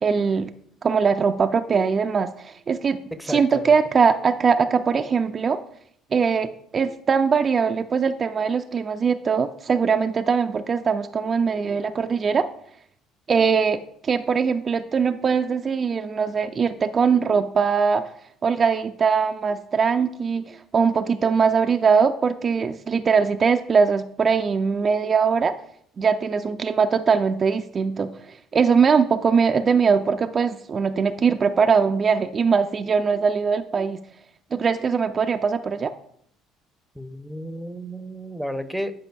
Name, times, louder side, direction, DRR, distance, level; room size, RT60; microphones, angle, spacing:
voice 1, 0.0-0.5 0.8-3.0 3.3-5.6 6.1-12.5 13.3-18.0 18.4-25.5 26.0-34.0 34.5-35.9, right 5 dB, 35° right, 7 dB, 0.3 m, -21 dB
voice 2, 3.2-3.7 37.0-38.9, equal, ahead, 11 dB, 0.6 m, -32 dB
10.0 x 4.9 x 2.3 m, 0.69 s
figure-of-eight pair, 55°, 0 cm